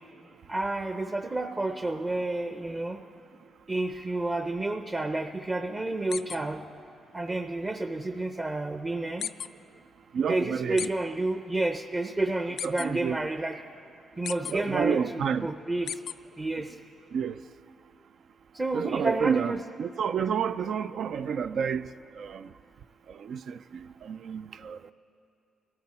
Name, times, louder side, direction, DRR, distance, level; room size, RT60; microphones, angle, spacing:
voice 1, 0.5-3.0 3.7-6.6 7.1-9.3 10.3-13.6 14.2-16.0 16.4-16.8 18.5-19.6, right 2 dB, 25° right, 0.7 m, -30 dB
sound 1, 6.1-6.4 9.2-9.5 10.8-10.9 12.6-12.9 14.2-14.5 15.9-16.1, left 9 dB, 70° left, 0.3 m, -34 dB
voice 2, 10.1-10.9 12.6-13.2 14.4-15.5 17.1-17.4 18.7-22.5 23.1-24.9, right 7 dB, 70° right, 0.4 m, -30 dB
23.0 x 13.5 x 4.3 m
cardioid pair, 95°, 0 cm